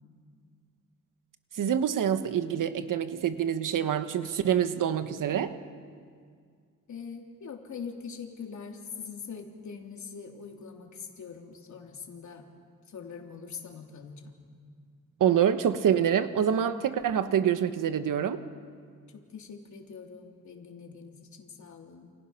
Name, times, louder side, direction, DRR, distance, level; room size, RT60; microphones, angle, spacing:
voice 1, 1.6-5.6 15.2-18.4, right 9 dB, 80° right, 10 dB, 1.4 m, -26 dB
voice 2, 6.9-12.4 12.9-14.3 19.3-22.1, left 6 dB, 65° left, 2 dB, 3.3 m, -43 dB
29.5 x 29.0 x 5.9 m, 2.1 s
wide cardioid pair, 120°, 32 cm